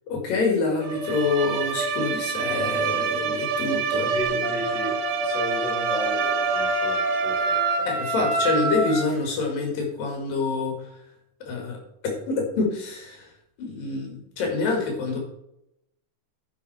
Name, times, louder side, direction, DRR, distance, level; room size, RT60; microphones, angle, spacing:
voice 1, 0.1-4.1 7.9-10.9 11.5-11.8 12.3-13.3 13.6-15.2, left 3 dB, 80° left, 1 dB, 3.7 m, -26 dB
Bowed string instrument, 0.8-7.9, right 4 dB, 80° right, 2.6 m, -27 dB
voice 2, 3.9-8.0, left 1 dB, 45° left, -5 dB, 5.5 m, -35 dB
Wind instrument woodwind instrument, 4.4-9.1, right 2 dB, 45° right, 2.5 m, -27 dB
16.0 x 5.5 x 4.0 m, 0.83 s
omnidirectional pair, 4.0 m